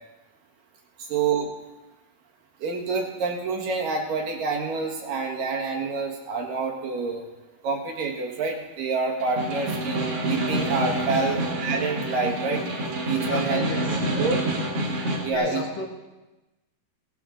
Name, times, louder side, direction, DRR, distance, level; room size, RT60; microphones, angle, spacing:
voice 1, 1.0-1.5 2.6-7.2 7.6-12.6 13.1-13.6 14.2-14.5 15.2-15.6, right 4 dB, 65° right, 0 dB, 3.0 m, -27 dB
Snare drum, 9.2-15.3, right 1 dB, 45° right, 2.6 m, -27 dB
voice 2, 13.3-14.2 15.3-15.9, left 4 dB, 65° left, 1 dB, 2.9 m, -32 dB
18.0 x 13.5 x 3.8 m, 1.1 s
omnidirectional pair, 4.5 m